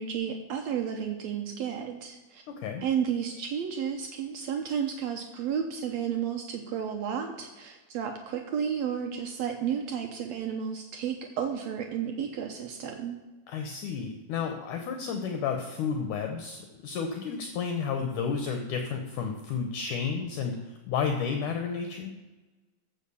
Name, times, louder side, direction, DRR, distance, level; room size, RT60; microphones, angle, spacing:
voice 1, 0.0-2.4 2.8-13.2, right 8 dB, 90° right, 4 dB, 1.5 m, -32 dB
voice 2, 2.5-2.8 13.5-22.1, left 6 dB, 70° left, 5 dB, 2.1 m, -32 dB
14.5 x 5.2 x 6.9 m, 1.2 s
omnidirectional pair, 4.2 m